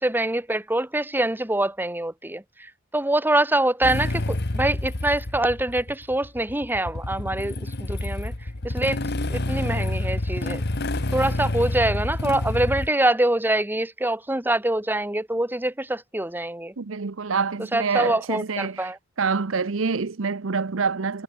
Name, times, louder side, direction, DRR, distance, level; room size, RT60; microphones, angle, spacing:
voice 1, 0.0-8.3 8.6-9.0 9.3-10.6 11.1-16.7 17.7-19.0, right 1 dB, 10° right, 1.9 m, -25 dB
Motorcycle / Engine starting, 3.8-12.9, left 1 dB, 55° left, 1.6 m, -28 dB
voice 2, 16.8-18.9 19.2-21.2, right 5 dB, 80° right, 0.8 m, -26 dB
head